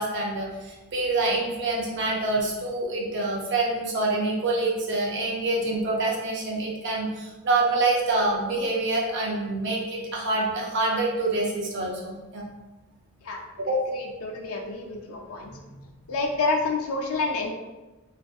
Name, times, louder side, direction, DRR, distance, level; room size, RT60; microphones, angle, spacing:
voice 1, 0.0-12.4 13.7-13.8, right 2 dB, 50° right, -2 dB, 0.5 m, -26 dB
voice 2, 13.9-15.5 16.1-17.5, left 3 dB, 70° left, 2 dB, 0.4 m, -28 dB
2.6 x 2.5 x 2.3 m, 1.2 s
head